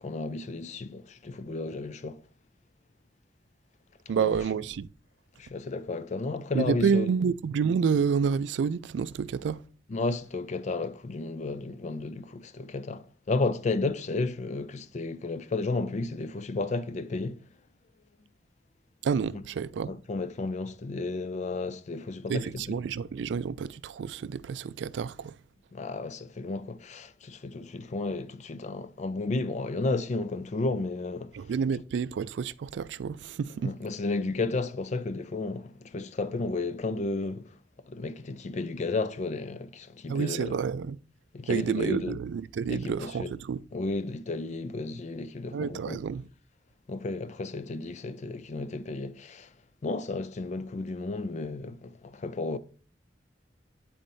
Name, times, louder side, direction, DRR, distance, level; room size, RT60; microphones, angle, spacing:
voice 1, 0.0-2.2 4.1-4.4 5.4-7.1 9.9-17.5 19.3-19.4 19.9-22.8 25.7-31.4 33.6-37.6 37.9-40.6 41.3-42.2 42.7-43.3 43.7-46.0 46.9-49.5 49.8-52.6, left 3 dB, 40° left, 0.4 m, -33 dB
voice 2, 4.1-4.9 6.5-9.6 19.0-19.9 22.3-25.3 31.3-33.7 40.1-41.0 41.5-43.6 45.5-46.3, right 6 dB, 70° right, 0.3 m, -29 dB
9.0 x 4.2 x 2.6 m
head